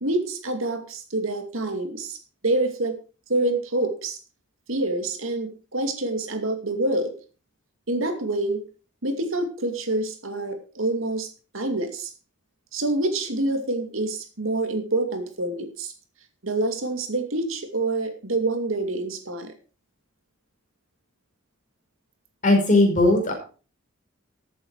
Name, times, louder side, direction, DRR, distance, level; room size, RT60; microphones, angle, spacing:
voice 1, 0.0-2.2 2.4-3.0 3.3-4.2 4.7-7.1 7.9-8.6 9.0-12.1 12.7-15.9 16.4-19.5, right 2 dB, 70° right, 6 dB, 2.5 m, -26 dB
voice 2, 22.4-23.3, left 2 dB, 40° left, 1 dB, 5.3 m, -18 dB
14.5 x 8.5 x 4.7 m, 0.37 s
head